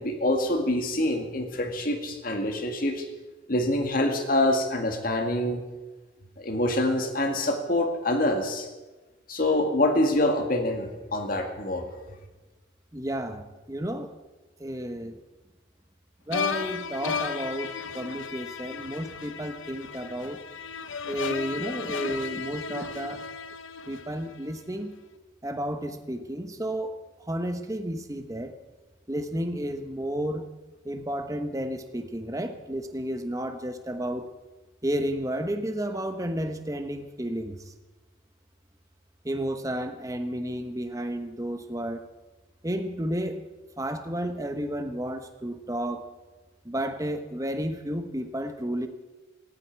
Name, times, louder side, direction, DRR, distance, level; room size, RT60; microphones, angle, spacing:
voice 1, 0.0-3.1 3.5-5.6 6.4-8.7 9.3-11.9, left 1 dB, 45° left, 4 dB, 2.1 m, -25 dB
voice 2, 12.9-14.1 14.6-15.2 16.3-20.4 21.1-23.2 23.9-24.9 25.4-27.0 27.3-28.5 29.1-30.5 30.8-34.3 34.8-37.6 39.2-42.1 42.6-43.4 43.8-46.1 46.6-48.9, right 1 dB, 15° right, 7 dB, 1.1 m, -32 dB
sound 1, 16.3-24.5, left 6 dB, 90° left, 1.0 m, -34 dB
18.5 x 15.5 x 4.7 m, 1.2 s
head